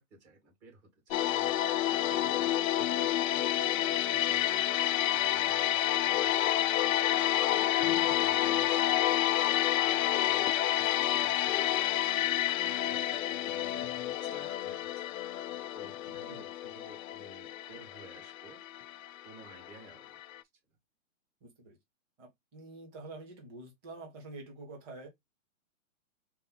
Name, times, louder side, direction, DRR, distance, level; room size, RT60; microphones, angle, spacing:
voice 1, 0.0-1.6 1.9-7.0 7.8-10.6 10.8-13.9 14.2-15.1 15.7-18.6 19.2-20.2, right 2 dB, 55° right, 2.6 m, -55 dB
sound 1, 1.1-19.9 20.2-20.4, left 13 dB, 75° left, 0.5 m, -29 dB
voice 2, 8.3-8.7 10.8-11.2 16.3-16.5 21.4-21.8 22.2-25.1, right 2 dB, 20° right, 0.9 m, -48 dB
4.3 x 2.1 x 3.9 m
hypercardioid pair, 165°, 41 cm